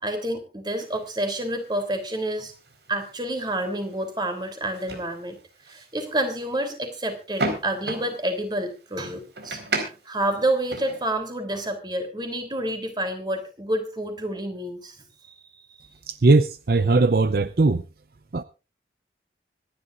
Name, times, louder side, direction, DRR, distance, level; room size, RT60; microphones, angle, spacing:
voice 1, 0.0-2.5 2.9-5.4 5.6-9.6 10.0-15.0 15.2-15.9, right 1 dB, 25° right, 6 dB, 3.2 m, -29 dB
sound 1, 0.7-11.1, right 2 dB, 75° right, 4.4 m, -37 dB
voice 2, 16.1-17.8 18.3-18.4, right 3 dB, 55° right, 13 dB, 0.6 m, -19 dB
25.5 x 11.0 x 2.5 m, 0.32 s
head